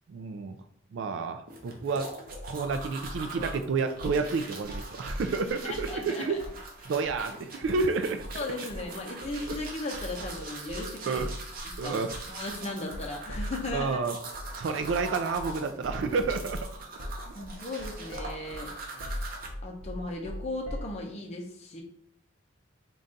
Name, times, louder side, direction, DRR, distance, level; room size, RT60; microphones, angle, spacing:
voice 1, 0.1-0.6 0.9-2.1 2.5-6.4 6.8-8.4 9.5-9.6 10.4-10.5 10.8-11.3 11.8-12.1 13.7-14.2 14.5-16.7 19.0-19.2, right 4 dB, 65° right, 8 dB, 0.3 m, -30 dB
sound 1, 1.5-19.5, right 3 dB, 45° right, 0.7 m, -43 dB
sound 2, 2.3-3.6 4.0-4.3 4.6-6.0 6.4-6.7 7.0-7.2 7.6-7.9 8.2-8.4 8.7-13.9 14.3-14.5 14.8-15.1 15.3-15.6 15.8-21.0, equal, 90° right, 0.7 m, -40 dB
voice 2, 5.6-6.4 8.3-11.3 11.8-12.0 12.3-14.0 17.3-18.7 19.6-21.8, left 2 dB, 30° left, 0 dB, 0.5 m, -36 dB
3.9 x 2.3 x 3.7 m, 0.65 s
head